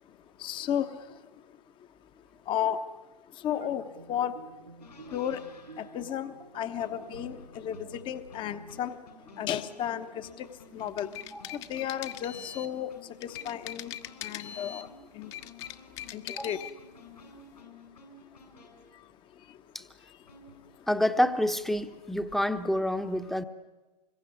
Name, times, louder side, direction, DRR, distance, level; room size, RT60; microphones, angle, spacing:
voice 1, 0.4-0.9 2.5-2.8 3.4-3.8 4.1-4.3 5.1-5.4 5.8-7.8 8.1-8.9 9.4-10.5 10.7-11.1 11.7-12.9 13.2-13.9 14.2-14.9 15.2-15.3 16.1-16.6, left 10 dB, 25° left, 10 dB, 1.1 m, -33 dB
sound 1, 3.6-8.8, right 3 dB, 90° right, 2.4 m, -50 dB
sound 2, 4.8-19.0 20.3-20.9, left 3 dB, 75° left, 8.0 m, -53 dB
sound 3, 10.8-12.8 13.2-14.9 15.2-16.8, left 11 dB, 40° left, 1.4 m, -41 dB
voice 2, 20.9-23.4, left 1 dB, ahead, 9 dB, 1.1 m, -28 dB
26.0 x 22.5 x 9.8 m, 1.2 s
figure-of-eight pair, 110°, 21 cm